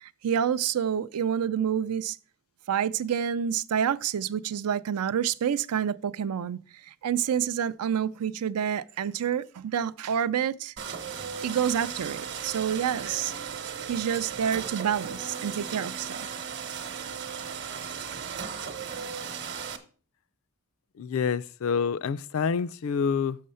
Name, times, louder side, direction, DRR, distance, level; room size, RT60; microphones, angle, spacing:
voice 1, 0.0-2.2 2.7-6.6 7.0-10.7 11.4-13.3 13.9-16.2, right 8 dB, 90° right, 0.4 m, -28 dB
sound 1, 10.8-19.8, right 7 dB, 50° right, 0.9 m, -36 dB
voice 2, 21.0-23.4, left 6 dB, 65° left, 0.4 m, -27 dB
6.5 x 6.4 x 5.5 m
head